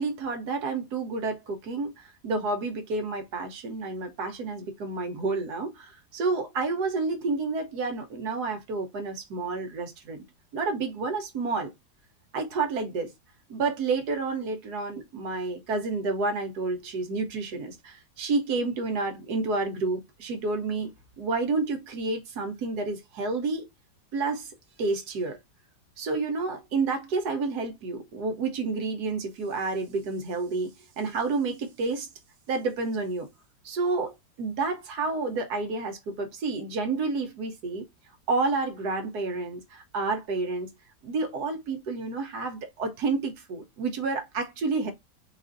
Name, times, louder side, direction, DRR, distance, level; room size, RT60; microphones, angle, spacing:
voice 1, 0.0-10.2 10.5-11.7 12.3-13.1 13.5-23.7 24.1-24.5 24.8-25.4 26.0-30.7 31.0-32.1 32.5-33.3 33.6-37.9 38.3-40.7 41.0-44.9, right 3 dB, 70° right, 1.4 m, -30 dB
4.0 x 2.5 x 3.7 m
omnidirectional pair, 1.8 m